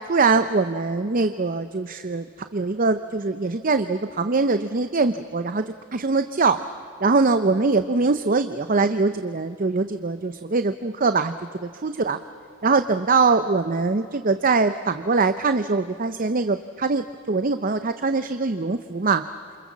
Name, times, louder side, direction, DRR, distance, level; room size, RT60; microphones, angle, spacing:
voice 1, 0.1-6.6 7.0-11.3 11.6-12.2 12.6-19.2, right 3 dB, 40° right, 10 dB, 0.7 m, -22 dB
28.0 x 28.0 x 7.3 m, 2.6 s
head